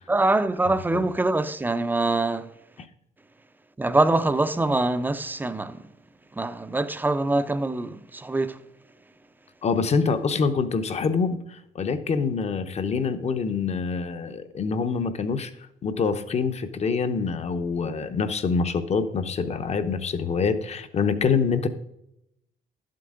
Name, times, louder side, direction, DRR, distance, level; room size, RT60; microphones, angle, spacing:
voice 1, 0.1-2.5 3.8-5.8 6.3-8.6, right 2 dB, 10° right, 0.5 m, -24 dB
voice 2, 9.6-15.5 15.8-21.7, left 5 dB, 35° left, 0.8 m, -25 dB
11.5 x 7.6 x 3.7 m
cardioid pair, 110°, 18 cm